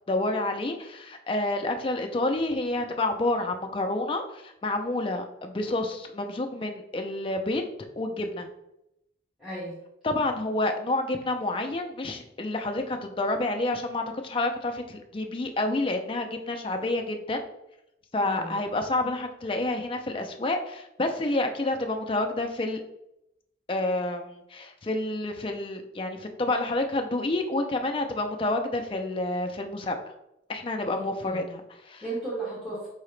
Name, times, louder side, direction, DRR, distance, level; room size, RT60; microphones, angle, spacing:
voice 1, 0.1-7.6 8.0-8.5 10.0-17.4 18.1-22.8 23.7-30.0 30.5-32.0, left 2 dB, 25° left, 5 dB, 0.4 m, -29 dB
voice 2, 9.4-9.8 18.2-18.5 30.9-31.4 32.0-32.9, right 2 dB, ahead, -12 dB, 1.2 m, -35 dB
4.7 x 2.8 x 3.2 m, 0.84 s
head